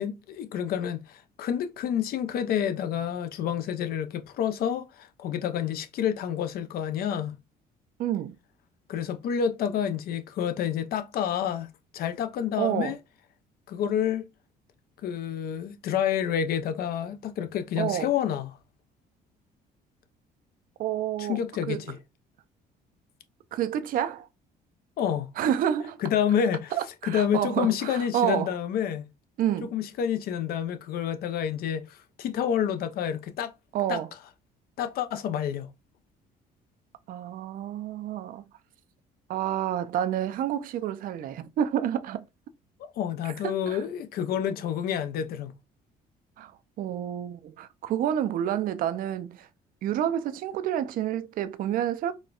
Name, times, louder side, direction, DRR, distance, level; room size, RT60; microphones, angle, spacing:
voice 1, 0.0-7.4 8.9-13.0 13.7-14.3 15.0-18.6 21.2-22.0 25.0-25.3 26.0-26.7 27.0-29.0 29.6-33.5 33.9-34.0 34.8-35.7 42.8-45.5, left 9 dB, 65° left, 0.5 m, -29 dB
voice 2, 8.0-8.3 12.6-12.9 17.8-18.1 20.8-21.4 21.7-21.8 23.5-24.3 25.4-26.0 26.7-28.5 29.4-29.7 33.7-34.1 37.1-38.4 39.3-42.2 43.4-43.8 46.4-46.5 46.8-49.5 49.8-52.1, right 10 dB, 55° right, 0.4 m, -29 dB
4.2 x 2.1 x 2.3 m
cardioid pair, 110°, 17 cm